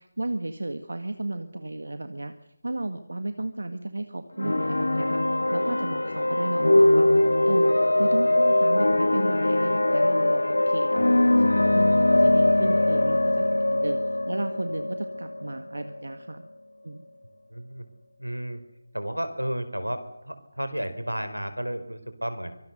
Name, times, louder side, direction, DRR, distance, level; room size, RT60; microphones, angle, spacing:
voice 1, 0.0-2.3 2.6-5.2 5.5-14.0 14.3-16.5 16.8-17.0, right 2 dB, 60° right, 9 dB, 1.7 m, -33 dB
sound 1, 4.4-16.0, left 1 dB, 65° left, 1.5 m, -22 dB
voice 2, 17.5-17.8 18.2-18.6 18.9-22.5, equal, 85° right, 10 dB, 4.3 m, -32 dB
24.5 x 19.5 x 6.7 m, 0.84 s
figure-of-eight pair, 160°, 0 cm